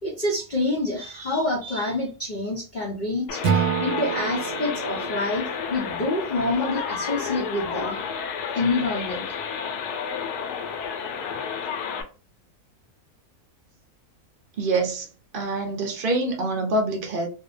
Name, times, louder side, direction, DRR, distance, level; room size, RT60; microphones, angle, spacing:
voice 1, 0.0-8.0 8.5-9.3, left 2 dB, 60° left, 0.4 m, -27 dB
sound 1, 3.3-12.0, left 7 dB, 85° left, 1.1 m, -31 dB
Acoustic guitar / Strum, 3.4-6.6, right 7 dB, 85° right, 1.1 m, -28 dB
voice 2, 14.6-15.1 15.3-17.3, right 2 dB, 50° right, 0.7 m, -25 dB
2.6 x 2.1 x 2.5 m
omnidirectional pair, 1.6 m